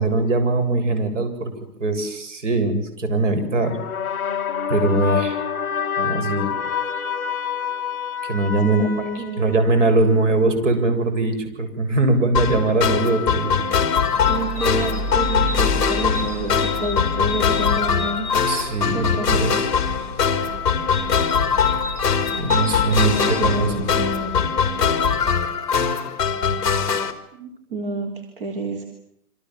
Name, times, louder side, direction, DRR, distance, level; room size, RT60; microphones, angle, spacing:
voice 1, 0.0-1.5 1.8-3.8 4.7-5.4 6.0-6.5 8.2-13.5 18.5-19.7 22.4-23.8, right 2 dB, 50° right, 8 dB, 7.9 m, -21 dB
sound 1, 3.6-10.0, left 8 dB, 15° left, 1.7 m, -27 dB
voice 2, 8.6-9.6 14.3-18.3 18.9-19.5 23.0-24.3 27.4-28.8, right 2 dB, 35° right, 4 dB, 3.7 m, -29 dB
sound 2, 12.3-27.1, left 7 dB, 30° left, 3.4 m, -22 dB
sound 3, 14.2-25.4, left 1 dB, 20° right, 2.9 m, -32 dB
28.5 x 26.0 x 7.6 m, 0.74 s
hypercardioid pair, 180°, 46 cm